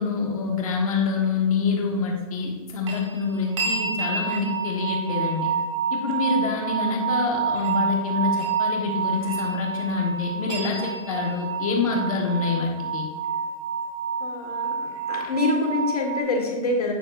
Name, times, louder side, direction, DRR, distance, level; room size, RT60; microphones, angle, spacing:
voice 1, 0.0-5.5 5.9-13.1, left 4 dB, 70° left, 1 dB, 1.3 m, -26 dB
sound 1, 2.9-16.2, right 5 dB, 60° right, 1.7 m, -28 dB
voice 2, 14.2-16.9, left 2 dB, 90° left, 2 dB, 1.7 m, -26 dB
9.4 x 6.0 x 2.5 m, 1.3 s
hypercardioid pair, 120°, 19 cm